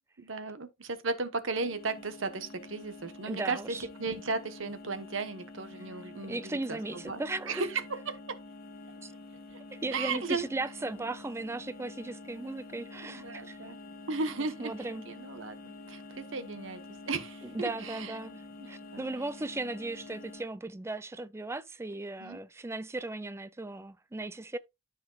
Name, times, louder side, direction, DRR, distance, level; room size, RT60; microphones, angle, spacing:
voice 1, 0.2-7.2 7.5-8.4 9.9-10.5 13.0-13.8 14.1-18.2 18.6-18.7 18.9-19.1 22.2-22.4, right 4 dB, 75° right, 1.0 m, -35 dB
sound 1, 1.5-20.4, left 2 dB, 50° left, 1.4 m, -48 dB
voice 2, 3.3-3.8 6.3-7.6 9.0-9.1 9.7-13.6 14.6-15.1 17.5-18.4 18.7-24.6, right 2 dB, 15° right, 0.4 m, -37 dB
13.0 x 5.0 x 2.3 m
head